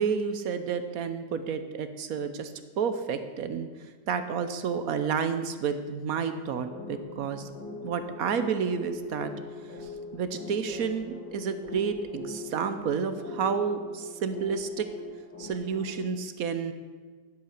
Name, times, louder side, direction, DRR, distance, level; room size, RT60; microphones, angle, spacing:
voice 1, 0.0-3.7 4.1-7.5 7.8-9.3 9.8-14.9 15.4-16.7, right 6 dB, 60° right, 10 dB, 1.1 m, -30 dB
sound 1, 6.7-16.0, left 2 dB, 85° left, 3.6 m, -41 dB
11.5 x 8.0 x 6.5 m, 1.5 s
omnidirectional pair, 1.9 m